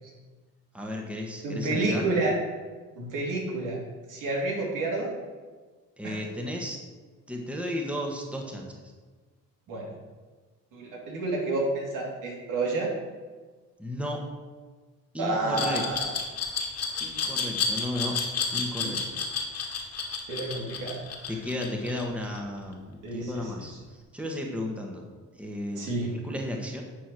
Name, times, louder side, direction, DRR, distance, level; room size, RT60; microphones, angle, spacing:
voice 1, 0.7-2.0 6.0-6.8 7.3-8.8 13.8-14.2 15.1-15.8 17.0-18.2 18.5-19.2 20.6-20.7 21.3-25.1 25.3-26.8, left 1 dB, 5° right, 0 dB, 1.6 m, -34 dB
voice 2, 1.4-2.3 3.0-3.8 4.1-5.1 6.0-6.2 9.7-9.9 10.7-12.9 15.2-16.1 18.8-18.9 20.3-21.0 23.0-23.3 25.8-26.1, right 2 dB, 75° right, -2 dB, 3.0 m, -29 dB
Glass, 15.5-22.4, left 5 dB, 55° left, 1.9 m, -30 dB
11.5 x 4.6 x 6.2 m, 1.4 s
cardioid pair, 90°, 32 cm